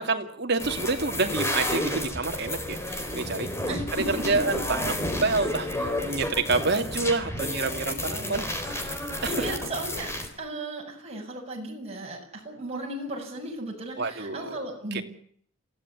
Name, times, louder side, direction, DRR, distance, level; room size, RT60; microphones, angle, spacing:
voice 1, 0.0-3.5 4.1-4.9 5.2-8.5 8.8-9.5 14.0-14.6 14.9-15.0, right 3 dB, 55° right, 5 dB, 2.6 m, -28 dB
sound 1, 0.6-10.3, left 1 dB, 15° left, 4.1 m, -31 dB
voice 2, 9.2-15.0, right 2 dB, 30° right, -1 dB, 7.4 m, -36 dB
27.0 x 16.0 x 9.8 m, 0.63 s
head